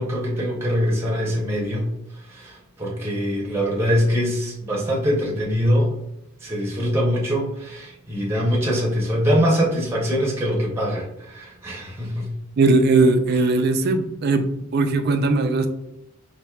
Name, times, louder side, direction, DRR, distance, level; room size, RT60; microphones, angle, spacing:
voice 1, 0.0-1.9 2.3-5.9 6.4-12.3, equal, 10° right, -4 dB, 0.6 m, -23 dB
voice 2, 12.6-14.5 14.7-15.7, right 3 dB, 50° right, 8 dB, 0.3 m, -19 dB
4.4 x 2.6 x 2.3 m, 0.85 s
head